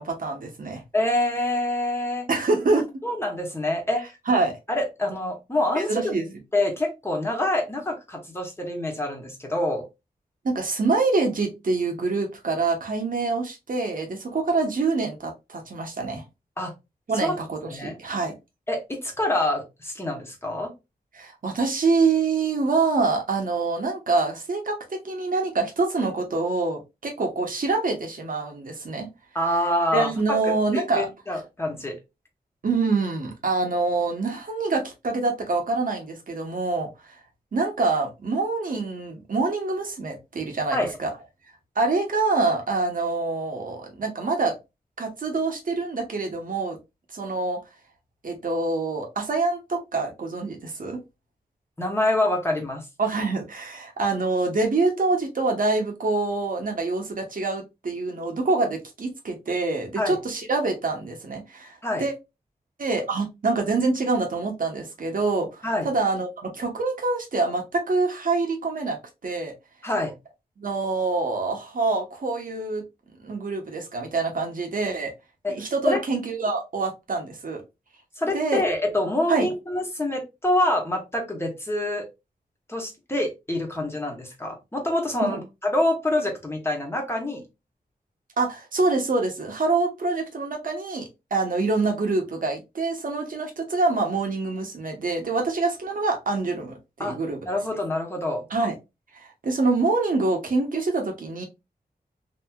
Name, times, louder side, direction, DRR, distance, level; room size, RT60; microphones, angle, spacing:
voice 1, 0.0-0.8 2.3-2.9 4.3-4.5 5.7-6.2 10.4-16.2 17.1-18.3 21.1-29.1 29.9-31.1 32.6-36.9 37.5-41.1 41.8-44.5 45.0-46.8 47.1-47.6 48.2-51.0 53.0-62.1 62.8-66.3 66.5-69.0 69.2-69.5 70.6-72.8 73.2-75.1 75.5-77.6 78.3-78.6 79.3-79.5 85.2-85.4 88.4-97.4 98.5-98.7 99.1-101.4, right 3 dB, 60° right, 1.0 m, -25 dB
voice 2, 0.9-2.2 3.0-4.1 4.7-6.1 6.5-9.8 16.6-16.7 17.2-17.3 17.7-18.0 18.7-20.7 29.3-32.0 40.7-41.0 51.8-52.9 60.0-60.2 61.8-62.0 65.6-65.9 69.8-70.1 75.4-75.6 75.8-76.0 78.1-82.1 82.7-87.4 97.0-97.2 97.5-98.4, left 1 dB, 15° left, 1.2 m, -26 dB
2.9 x 2.8 x 2.3 m
wide cardioid pair, 75°, 16 cm